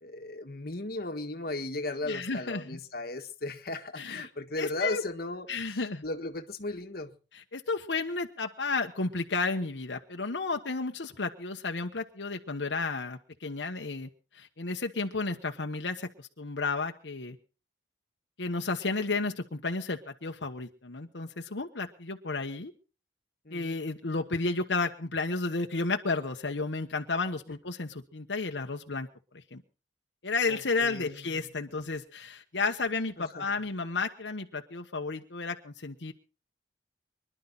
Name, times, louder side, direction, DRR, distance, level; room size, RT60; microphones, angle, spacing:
voice 1, 0.0-7.1 23.4-23.8 30.5-31.5 33.2-33.5, left 2 dB, 55° left, 1.5 m, -36 dB
voice 2, 2.0-2.8 3.9-4.3 4.6-5.0 5.5-6.0 7.3-17.4 18.4-22.7 23.5-29.1 29.3-29.6 30.2-36.1, left 3 dB, 85° left, 1.2 m, -32 dB
25.0 x 11.5 x 4.0 m
head